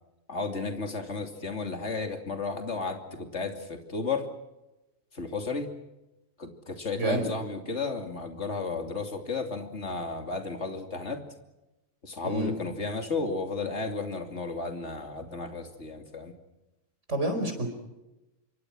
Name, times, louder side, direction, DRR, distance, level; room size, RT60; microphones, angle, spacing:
voice 1, 0.3-4.3 5.1-5.7 6.4-11.2 12.0-16.3, left 3 dB, 60° left, 5 dB, 3.1 m, -33 dB
voice 2, 7.0-7.3 12.2-12.5 17.1-17.7, right 1 dB, 65° right, 6 dB, 5.0 m, -28 dB
27.0 x 24.5 x 6.2 m, 0.99 s
omnidirectional pair, 1.3 m